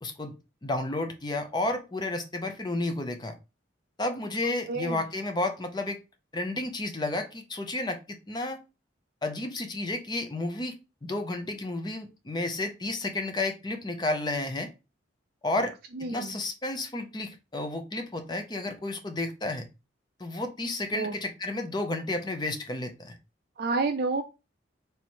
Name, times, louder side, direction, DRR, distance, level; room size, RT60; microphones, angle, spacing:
voice 1, 0.0-3.3 4.0-6.0 6.3-8.0 8.3-8.6 9.2-10.7 11.0-14.7 15.4-15.7 16.1-19.6 20.2-23.2, left 2 dB, 20° left, 5 dB, 0.6 m, -31 dB
voice 2, 4.4-5.0 15.9-16.4 20.9-21.2 23.6-24.2, right 3 dB, 50° right, 5 dB, 0.4 m, -30 dB
3.4 x 3.0 x 4.3 m, 0.28 s
head